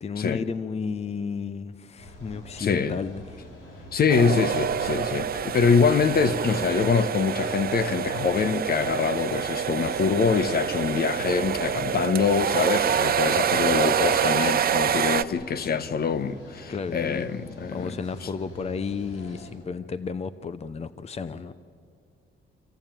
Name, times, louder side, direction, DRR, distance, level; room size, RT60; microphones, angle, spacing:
voice 1, 0.0-3.4 16.7-17.3 17.7-21.5, left 5 dB, 30° left, 0.8 m, -32 dB
sound 1, 2.0-19.5, left 1 dB, 90° left, 5.8 m, -44 dB
voice 2, 2.6-3.0 3.9-17.9, left 5 dB, 50° left, 1.0 m, -24 dB
sound 2, 4.1-15.2, right 8 dB, 50° right, 0.8 m, -26 dB
26.0 x 16.0 x 9.1 m
cardioid pair, 90°, 20 cm